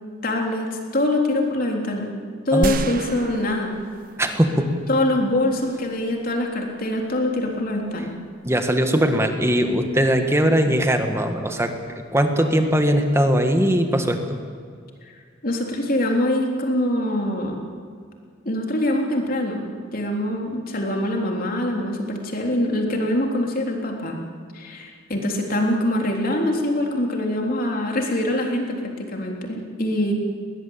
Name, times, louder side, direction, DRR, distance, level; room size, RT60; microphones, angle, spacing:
voice 1, 0.2-2.1 2.5-3.8 4.9-8.1 15.4-17.6 18.5-19.6 19.9-24.2 24.5-30.1, left 1 dB, 50° left, 1 dB, 3.6 m, -24 dB
voice 2, 2.5-2.9 4.2-4.7 8.4-11.7 12.1-14.4, equal, 15° right, 6 dB, 1.6 m, -20 dB
sound 1, 2.6-4.9, right 2 dB, 45° right, 1.0 m, -31 dB
21.0 x 18.5 x 8.9 m, 2.1 s
head